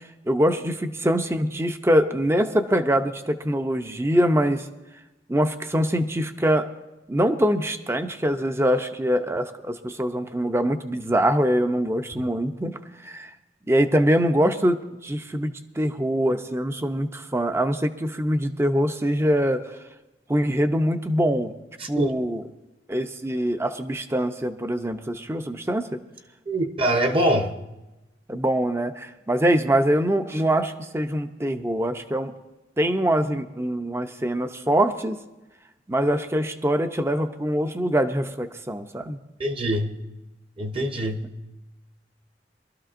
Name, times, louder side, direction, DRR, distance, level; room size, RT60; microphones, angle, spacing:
voice 1, 0.3-4.7 5.3-6.7 7.1-13.3 13.7-19.8 20.3-21.5 21.9-22.4 22.9-26.0 28.3-32.3 32.8-35.2 35.9-39.2, equal, 15° right, 8 dB, 0.6 m, -23 dB
voice 2, 21.8-22.1 26.5-27.5 39.4-39.9 40.6-41.3, right 1 dB, 30° right, 5 dB, 0.9 m, -24 dB
23.0 x 12.5 x 2.6 m, 1.0 s
head